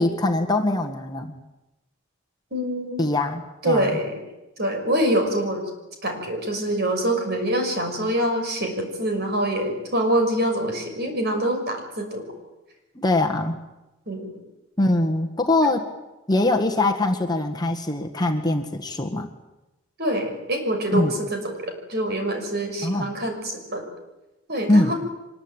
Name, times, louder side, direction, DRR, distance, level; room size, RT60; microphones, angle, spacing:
voice 1, 0.0-1.3 3.0-4.0 13.0-13.6 14.8-15.8 16.3-19.3 20.9-21.1 22.8-23.1 24.7-24.9, left 2 dB, 20° left, 3 dB, 1.7 m, -22 dB
voice 2, 2.5-3.0 3.6-4.2 4.6-5.7 6.0-12.3 14.1-14.3 15.6-15.7 20.0-23.9 24.5-24.9, right 1 dB, 50° right, 4 dB, 6.2 m, -25 dB
24.5 x 21.0 x 9.0 m, 1.0 s
head